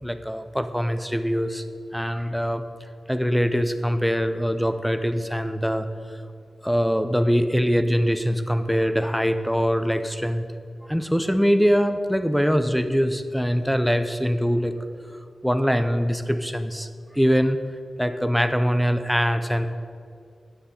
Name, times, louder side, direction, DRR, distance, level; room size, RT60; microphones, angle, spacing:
voice 1, 0.0-1.6 1.9-2.6 3.1-6.2 6.6-10.4 10.9-14.9 15.4-16.9 17.1-17.6 18.0-19.7, equal, ahead, 9 dB, 0.5 m, -23 dB
12.0 x 10.0 x 4.3 m, 2.3 s
wide cardioid pair, 135°, 0 cm